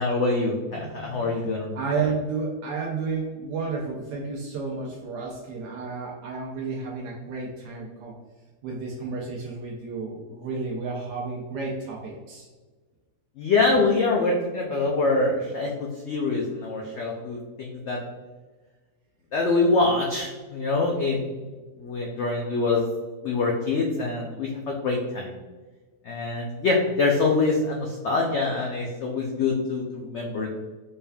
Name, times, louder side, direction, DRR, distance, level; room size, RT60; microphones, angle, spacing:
voice 1, 0.0-2.0 13.4-18.0 19.3-21.3 21.8-22.8 23.2-25.3 26.0-30.5, left 3 dB, 85° left, -1 dB, 0.6 m, -25 dB
voice 2, 0.8-1.5 1.7-8.1 8.6-12.5, right 4 dB, 85° right, -2 dB, 1.3 m, -32 dB
4.4 x 3.3 x 2.2 m, 1.3 s
omnidirectional pair, 1.8 m